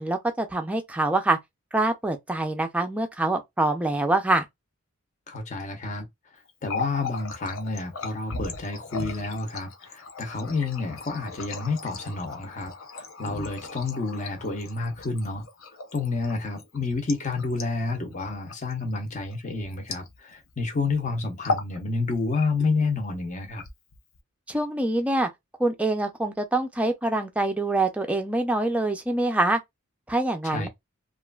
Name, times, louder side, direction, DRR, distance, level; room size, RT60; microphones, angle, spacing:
voice 1, 0.0-1.4 1.7-4.5 24.5-25.3 25.6-29.6 30.1-30.7, right 2 dB, 5° right, 0.4 m, -25 dB
voice 2, 5.3-6.1 6.6-15.5 15.9-23.6 30.4-30.7, left 3 dB, 35° left, 0.7 m, -29 dB
Water tap faucet, 6.5-20.5 20.8-21.0 21.3-21.8 22.1-22.8 23.4-24.2, left 4 dB, 65° left, 0.6 m, -37 dB
2.9 x 2.4 x 2.3 m
head